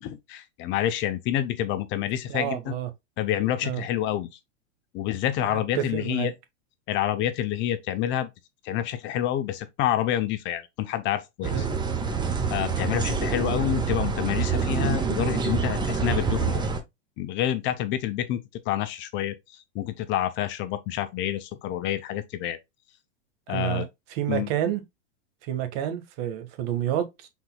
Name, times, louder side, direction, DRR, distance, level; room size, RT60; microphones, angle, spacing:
voice 1, 0.0-2.7 3.2-4.3 4.9-6.3 6.9-8.3 8.6-11.7 12.5-16.6 17.2-19.3 19.7-22.6 23.5-23.9 24.3-24.5, left 11 dB, 30° left, 0.6 m, -28 dB
voice 2, 2.3-2.9 3.6-3.8 5.4-6.3 11.5-11.8 23.5-23.8 24.1-24.8 25.5-27.3, right 11 dB, 45° right, 1.4 m, -29 dB
sound 1, 11.4-16.8, right 5 dB, 10° right, 0.8 m, -26 dB
6.0 x 4.0 x 2.2 m
hypercardioid pair, 125°, 38 cm